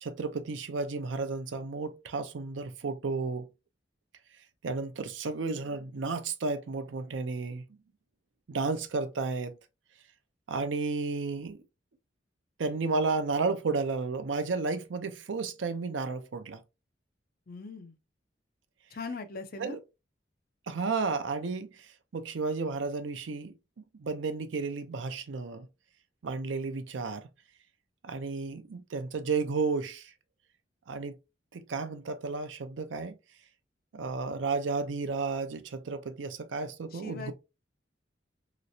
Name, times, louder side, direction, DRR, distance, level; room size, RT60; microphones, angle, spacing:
voice 1, 0.0-3.5 4.6-7.6 8.5-9.6 10.5-11.6 12.6-16.6 19.6-19.8 20.7-23.5 24.0-25.7 26.2-27.3 28.0-30.1 30.9-31.2 31.5-33.1 33.9-37.3, right 4 dB, 90° right, 0.5 m, -32 dB
voice 2, 17.5-18.0 18.9-19.8 36.9-37.3, left 4 dB, 55° left, 0.5 m, -40 dB
3.1 x 3.0 x 2.6 m
head